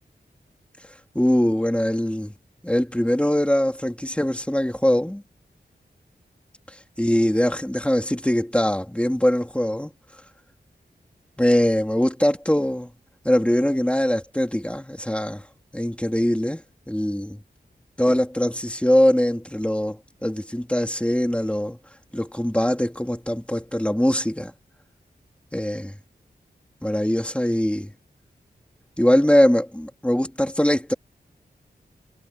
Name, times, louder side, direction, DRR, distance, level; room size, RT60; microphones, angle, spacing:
voice 1, 1.1-2.3 2.6-5.2 6.7-9.9 11.4-12.9 13.2-15.5 15.7-16.6 16.9-17.4 18.0-21.8 22.1-24.5 25.5-26.0 26.8-27.9 29.0-30.9, equal, 5° left, 3.6 m, -22 dB
wide cardioid pair, 100°, 17 cm